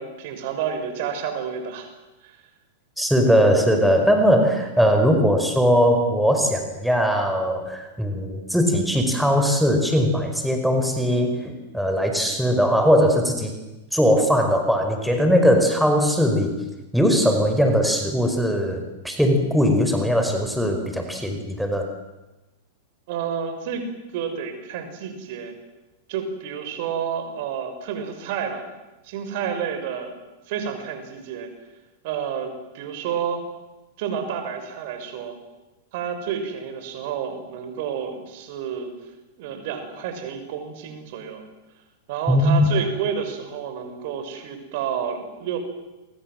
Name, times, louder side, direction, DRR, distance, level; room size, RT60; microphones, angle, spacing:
voice 1, 0.0-1.9 2.2-2.4 23.1-23.9 24.1-25.6 26.1-28.7 29.0-30.1 30.5-31.5 32.0-33.4 34.0-35.4 35.9-38.9 39.4-41.4 42.1-45.6, right 7 dB, 55° right, 7 dB, 6.3 m, -30 dB
voice 2, 3.0-13.5 13.9-16.5 16.9-21.9 42.3-42.7, equal, ahead, 4 dB, 5.0 m, -20 dB
29.5 x 24.0 x 7.8 m, 1.0 s
hypercardioid pair, 105°, 0 cm